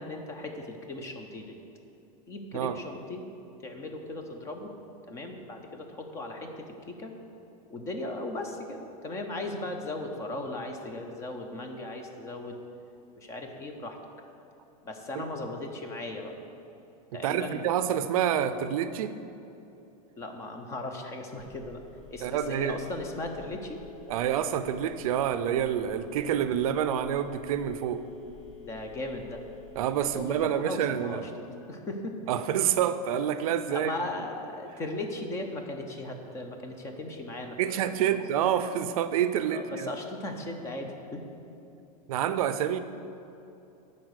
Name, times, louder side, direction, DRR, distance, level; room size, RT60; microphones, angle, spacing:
voice 1, 0.0-1.6 2.3-3.2 3.6-4.7 5.1-7.1 7.7-12.6 13.2-14.0 14.8-16.3 17.1-17.6 20.2-21.8 22.1-23.8 28.6-29.4 30.0-31.3 31.7-32.2 33.7-38.2 39.5-41.2, left 2 dB, 15° left, 4 dB, 0.5 m, -37 dB
voice 2, 17.1-19.1 22.2-22.8 24.1-28.0 29.8-31.3 32.3-34.0 37.6-39.9 42.1-42.8, right 9 dB, 65° right, 12 dB, 0.4 m, -28 dB
Telephone, 21.4-30.4, left 4 dB, 50° left, 1.1 m, -49 dB
9.6 x 4.1 x 6.4 m, 2.8 s
supercardioid pair, 170°, 20 cm